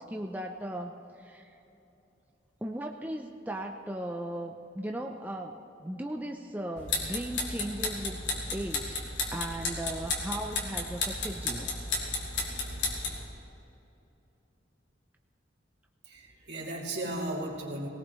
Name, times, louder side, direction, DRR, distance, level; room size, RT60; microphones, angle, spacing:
voice 1, 0.0-1.6 2.6-5.5 5.8-8.2 8.5-9.0 9.3-11.8, right 1 dB, 10° right, 2 dB, 0.5 m, -37 dB
sound 1, 6.8-13.2, left 3 dB, 75° left, 2.5 m, -33 dB
voice 2, 16.0-17.9, right 1 dB, 65° right, -3 dB, 2.7 m, -35 dB
20.0 x 18.0 x 3.1 m, 2.9 s
head